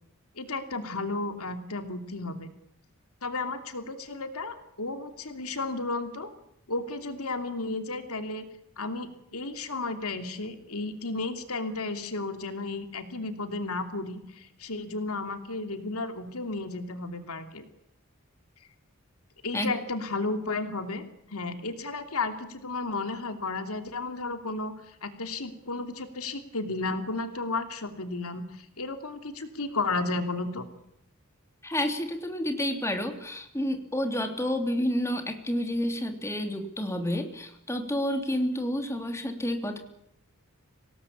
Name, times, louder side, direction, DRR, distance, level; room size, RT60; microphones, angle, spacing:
voice 1, 0.4-2.5 3.2-6.3 6.7-8.4 8.8-17.6 19.4-21.0 21.3-24.7 25.0-30.7, left 3 dB, 85° left, 7 dB, 2.8 m, -33 dB
voice 2, 31.6-39.8, left 1 dB, 15° left, 5 dB, 3.2 m, -29 dB
26.0 x 18.5 x 8.7 m, 0.80 s
head